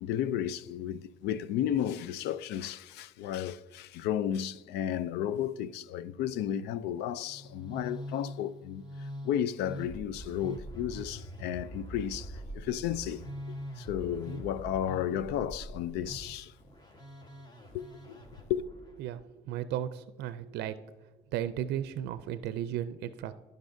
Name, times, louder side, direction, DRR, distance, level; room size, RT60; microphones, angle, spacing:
voice 1, 0.0-13.2 13.8-16.5 17.7-18.2 18.5-18.6, left 10 dB, 85° left, 0.4 m, -33 dB
Musical instrument, 7.2-19.0, equal, 25° left, 1.3 m, -44 dB
voice 2, 19.0-20.8 21.3-23.3, right 11 dB, 80° right, 0.5 m, -35 dB
15.0 x 5.3 x 2.6 m
cardioid pair, 110°, 17 cm